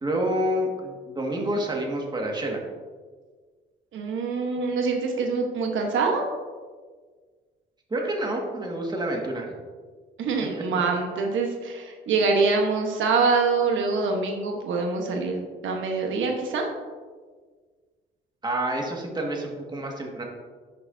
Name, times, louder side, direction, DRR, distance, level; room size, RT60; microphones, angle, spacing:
voice 1, 0.0-2.6 7.9-9.5 18.4-20.2, right 1 dB, 20° right, 0 dB, 1.8 m, -28 dB
voice 2, 3.9-6.2 10.2-16.7, right 4 dB, 75° right, 2 dB, 1.1 m, -25 dB
10.5 x 6.7 x 2.7 m, 1.5 s
cardioid pair, 90°, 20 cm